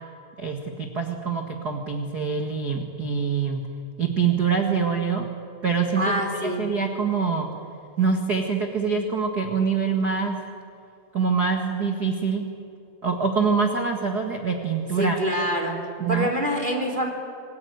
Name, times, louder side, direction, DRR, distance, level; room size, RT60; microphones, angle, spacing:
voice 1, 0.4-3.6 4.0-5.2 5.6-6.1 6.4-7.5 8.0-10.4 11.1-12.5 13.0-15.2 16.0-16.3, right 5 dB, 70° right, 3 dB, 0.9 m, -25 dB
voice 2, 6.0-6.6 15.0-15.7 16.1-17.1, equal, 15° right, 3 dB, 2.6 m, -25 dB
27.0 x 19.0 x 9.5 m, 2.5 s
omnidirectional pair, 5.0 m